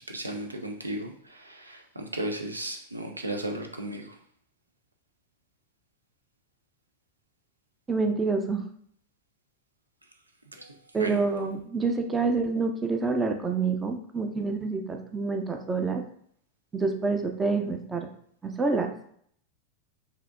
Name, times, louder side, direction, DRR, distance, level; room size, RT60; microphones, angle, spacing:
voice 1, 0.1-4.2 10.5-11.2, right 1 dB, 80° right, 4 dB, 0.5 m, -35 dB
voice 2, 7.9-8.6 10.9-16.0 16.7-18.1 18.4-18.9, right 4 dB, 15° right, 5 dB, 0.5 m, -27 dB
5.5 x 2.7 x 2.4 m, 0.64 s
figure-of-eight pair, 90°, 0 cm